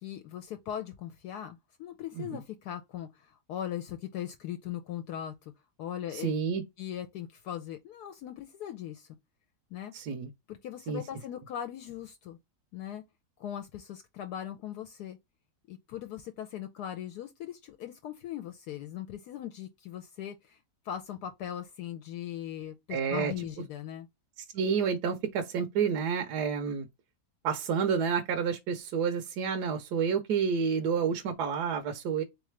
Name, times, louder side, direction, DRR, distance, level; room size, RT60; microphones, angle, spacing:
voice 1, 0.0-5.5 5.8-6.3 6.8-9.1 9.7-9.9 10.5-12.4 12.7-13.0 13.4-15.2 15.7-20.6 20.8-24.1, left 10 dB, 75° left, 1.1 m, -39 dB
voice 2, 6.1-6.6 9.9-10.3 10.9-11.0 22.9-23.3 24.4-26.9 27.4-32.2, right 6 dB, 75° right, 1.2 m, -29 dB
3.7 x 3.2 x 3.2 m
omnidirectional pair, 1.8 m